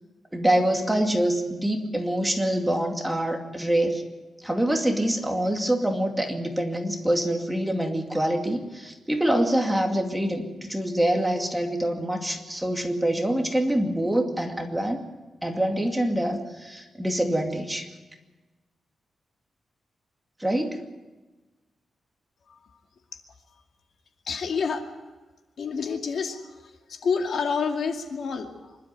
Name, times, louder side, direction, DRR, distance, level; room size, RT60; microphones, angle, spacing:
voice 1, 0.3-4.0 4.4-15.0 15.4-17.9 20.4-20.8, right 1 dB, 5° right, 3 dB, 2.4 m, -25 dB
voice 2, 22.5-22.8 23.5-23.6 24.2-24.9 25.6-28.8, left 5 dB, 65° left, 4 dB, 2.3 m, -29 dB
26.0 x 12.0 x 9.5 m, 1.2 s
wide cardioid pair, 120°, 0 cm